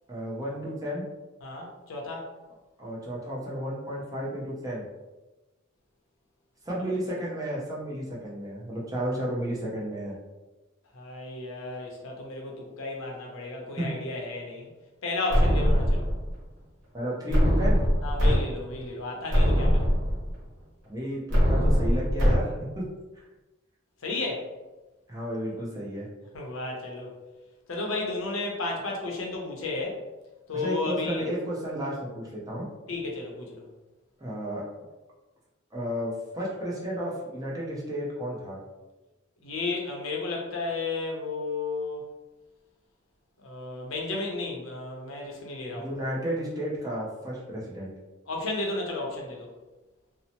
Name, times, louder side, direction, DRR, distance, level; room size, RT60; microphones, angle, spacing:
voice 1, 0.1-1.0 2.8-4.8 6.7-10.2 13.8-13.9 16.9-17.9 20.8-21.2 21.5-22.8 25.1-26.1 30.5-32.7 34.2-34.6 35.7-38.6 45.8-47.9, equal, 15° right, -5 dB, 0.5 m, -32 dB
voice 2, 1.4-2.3 10.9-14.7 15.0-16.1 18.0-19.9 24.0-24.5 26.3-27.1 27.7-30.0 30.5-31.3 32.9-33.6 39.4-42.1 43.4-45.9 48.3-49.5, left 3 dB, 75° left, 0 dB, 0.6 m, -33 dB
sound 1, 15.3-16.3 17.3-18.3 18.8-18.9 19.3-20.3 21.3-22.3, equal, 60° right, 1.0 m, -22 dB
2.7 x 2.0 x 2.8 m, 1.1 s
head